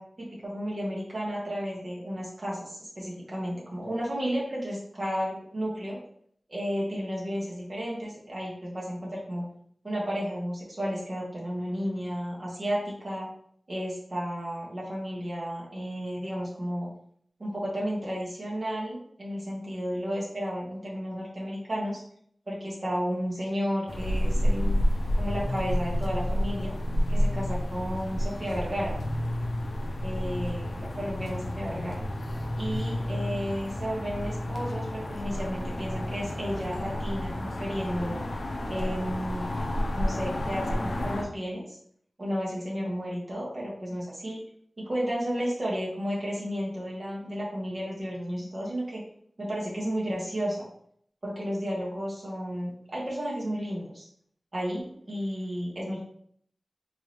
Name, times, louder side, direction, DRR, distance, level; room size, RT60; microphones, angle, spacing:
voice 1, 0.0-6.0 6.5-9.4 9.8-13.3 13.7-16.9 17.4-22.0 22.5-24.8 25.1-26.7 27.1-28.9 30.0-32.0 32.6-38.2 38.7-39.6 39.9-41.8 42.2-44.4 44.8-49.0 49.4-50.7 51.2-54.1 54.5-56.0, equal, 50° right, -5 dB, 1.5 m, -32 dB
sound 1, 23.9-41.2, left 1 dB, 75° left, 0.5 m, -30 dB
3.5 x 3.3 x 2.9 m, 0.65 s
wide cardioid pair, 75°, 0 cm